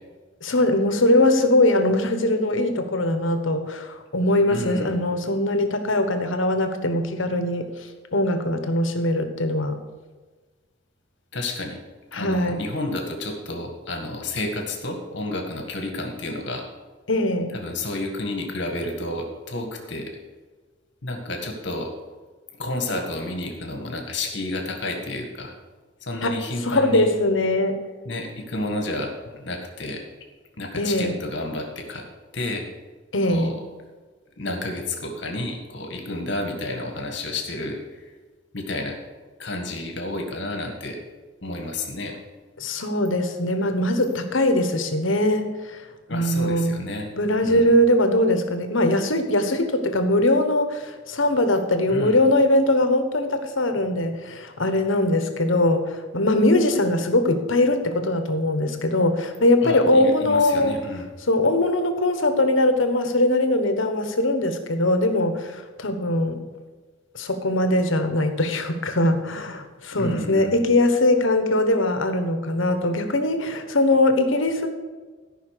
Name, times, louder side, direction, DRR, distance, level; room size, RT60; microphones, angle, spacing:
voice 1, 0.4-7.7 8.1-9.7 12.1-12.6 17.1-17.5 26.2-26.4 26.6-27.8 30.7-31.1 33.1-33.5 42.6-45.8 46.1-46.8 47.2-60.8 61.3-66.4 67.1-74.7, left 1 dB, 75° left, 7 dB, 1.3 m, -21 dB
voice 2, 4.5-4.9 11.3-11.8 12.1-16.7 17.5-20.2 21.0-21.9 22.6-25.5 26.0-27.1 28.1-30.0 30.6-32.0 32.3-32.7 33.2-33.6 34.4-38.1 38.5-39.0 39.4-41.0 41.4-42.2 46.1-47.1 47.4-47.7 51.9-52.2 59.6-61.1 69.9-70.6, left 2 dB, 60° left, 3 dB, 1.8 m, -31 dB
14.0 x 5.7 x 6.7 m, 1.4 s
head